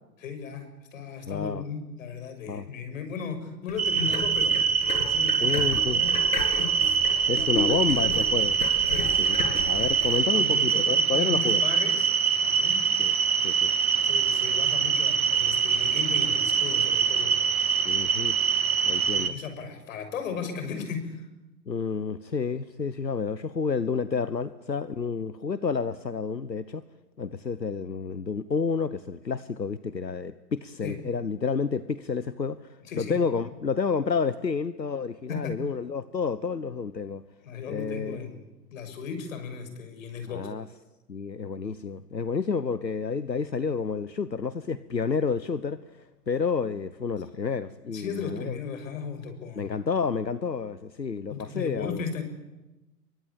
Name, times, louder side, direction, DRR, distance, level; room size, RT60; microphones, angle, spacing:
voice 1, 0.2-4.6 5.1-6.1 6.6-6.7 7.3-8.5 8.9-9.1 10.3-12.1 12.4-12.8 14.0-17.4 19.1-21.3 30.8-31.0 32.8-33.2 35.3-35.5 37.4-38.4 38.7-40.5 47.9-49.8 51.3-52.2, left 5 dB, 50° left, 6.4 m, -36 dB
voice 2, 1.3-1.6 2.5-2.7 5.4-6.0 7.3-8.6 9.2-11.6 13.0-13.1 13.4-13.7 17.8-18.4 18.9-19.3 21.7-26.8 27.2-37.2 37.7-38.2 40.3-40.7 41.1-48.6 49.5-52.0, left 5 dB, 85° left, 1.2 m, -30 dB
sound 1, 3.7-10.2, left 4 dB, 70° left, 7.7 m, -35 dB
sound 2, 3.8-19.3, right 6 dB, 60° right, 2.7 m, -24 dB
28.5 x 24.0 x 8.7 m
figure-of-eight pair, 115°, 49 cm